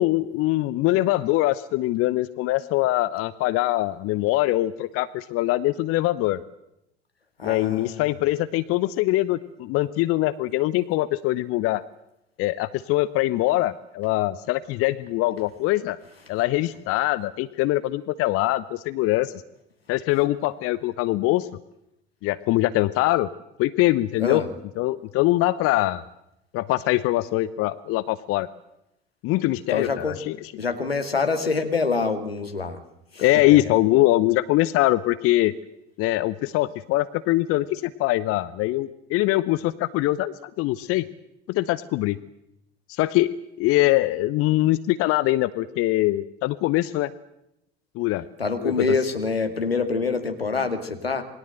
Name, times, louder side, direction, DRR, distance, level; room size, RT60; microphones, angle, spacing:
voice 1, 0.0-6.4 7.4-11.8 12.4-16.0 16.3-19.3 19.9-21.5 22.2-23.3 23.6-24.4 24.8-26.0 26.5-28.5 29.2-30.4 33.2-35.5 36.0-41.0 41.5-42.2 42.9-47.1 47.9-48.2 48.6-48.7, left 17 dB, 50° left, 16 dB, 0.9 m, -23 dB
voice 2, 7.4-8.0 24.2-24.5 29.7-30.2 30.6-32.8 33.1-33.4 48.4-51.2, left 4 dB, 85° left, 7 dB, 2.3 m, -26 dB
27.5 x 21.5 x 7.8 m, 0.85 s
figure-of-eight pair, 60°, 29 cm